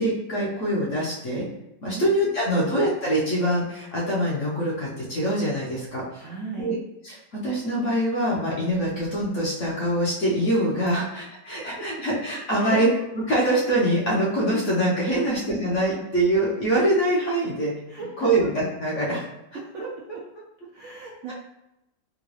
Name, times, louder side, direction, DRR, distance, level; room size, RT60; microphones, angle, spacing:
voice 1, 0.0-1.4 1.8-6.2 6.6-6.8 7.0-12.9 13.3-17.7 18.2-19.2, right 1 dB, 55° left, -6 dB, 0.9 m, -24 dB
voice 2, 1.9-2.7 6.2-6.7 11.6-11.9 12.5-12.8 15.1-15.2 17.9-18.4 19.5-19.8 20.7-21.3, right 4 dB, 75° right, -3 dB, 0.8 m, -37 dB
3.8 x 2.2 x 3.1 m, 0.89 s
omnidirectional pair, 1.9 m